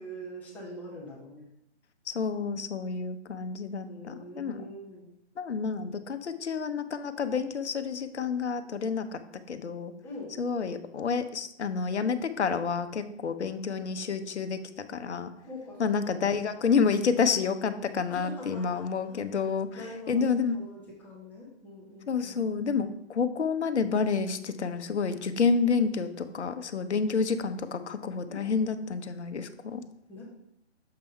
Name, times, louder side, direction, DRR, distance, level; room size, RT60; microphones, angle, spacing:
voice 1, 0.0-1.5 3.8-5.1 10.0-10.3 15.4-16.3 18.1-20.2 20.5-22.4 28.3-28.4 30.1-30.2, left 1 dB, 5° left, -6 dB, 0.8 m, -44 dB
voice 2, 2.1-4.7 5.4-9.2 9.5-9.9 10.4-14.6 14.9-15.3 15.8-19.7 20.1-20.6 22.1-29.8, left 5 dB, 70° left, 10 dB, 0.8 m, -29 dB
6.8 x 3.5 x 5.5 m, 0.78 s
hypercardioid pair, 150°, 35 cm